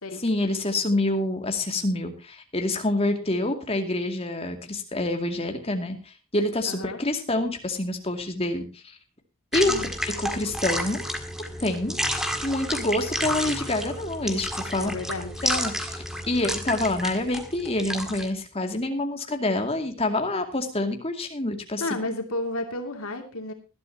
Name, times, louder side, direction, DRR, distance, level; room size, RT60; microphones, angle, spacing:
voice 1, 0.2-9.0 9.5-9.7 10.0-11.0 11.6-12.1 12.4-14.9 15.4-22.0, left 2 dB, 25° left, 5 dB, 2.4 m, -27 dB
voice 2, 6.7-7.0 9.6-9.9 14.8-15.5 21.8-23.5, left 2 dB, 70° left, 5 dB, 2.7 m, -32 dB
sound 1, 9.5-18.3, equal, ahead, 1.7 m, -31 dB
20.0 x 12.0 x 2.9 m, 0.30 s
head